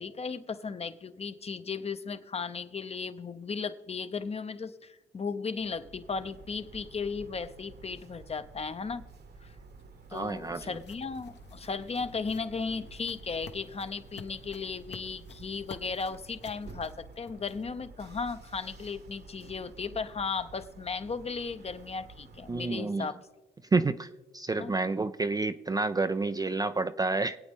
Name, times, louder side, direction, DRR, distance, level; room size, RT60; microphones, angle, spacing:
voice 1, 0.0-9.0 9.4-9.5 10.1-23.2 24.6-24.7, left 5 dB, 30° left, 12 dB, 0.8 m, -36 dB
sound 1, 5.6-22.7, right 4 dB, 55° right, 1.3 m, -51 dB
sound 2, 9.3-17.9, left 6 dB, 60° left, 1.2 m, -53 dB
voice 2, 10.1-10.8 22.5-23.1 23.7-27.4, right 3 dB, 20° right, 11 dB, 0.4 m, -29 dB
23.5 x 8.6 x 3.6 m, 1.2 s
cardioid pair, 90°, 20 cm